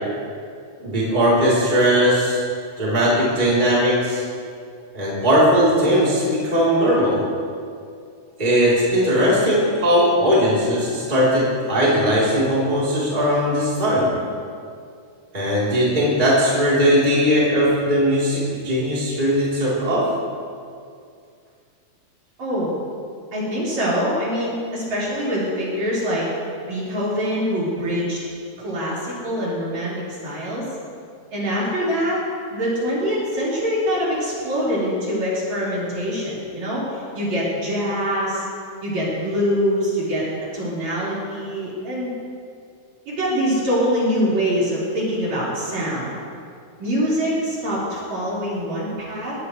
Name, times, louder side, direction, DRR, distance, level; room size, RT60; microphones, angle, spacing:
voice 1, 0.8-2.4 2.8-4.2 4.9-7.2 8.4-14.1 15.3-20.1, equal, 15° right, -8 dB, 3.7 m, -19 dB
voice 2, 22.4-22.7 23.3-26.2 26.6-28.2 28.6-30.7 31.3-32.2 32.5-38.4 38.8-40.2 40.5-42.2 43.1-46.2 46.8-49.4, equal, 55° right, -8 dB, 6.2 m, -24 dB
20.5 x 17.0 x 3.3 m, 2.3 s
omnidirectional pair, 3.9 m